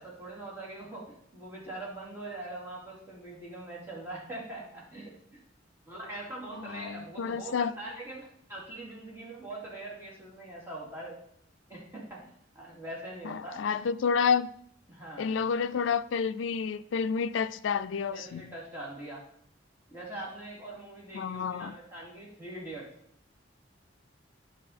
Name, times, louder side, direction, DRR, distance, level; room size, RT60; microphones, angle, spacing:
voice 1, 0.0-5.1 5.9-11.2 11.7-13.6 14.9-15.3 18.1-19.2 19.9-22.9, right 2 dB, 10° right, 2.6 m, -42 dB
voice 2, 6.6-7.7 13.3-14.5 15.2-18.5 21.1-21.7, left 6 dB, 80° left, 0.4 m, -29 dB
9.5 x 6.0 x 4.2 m
head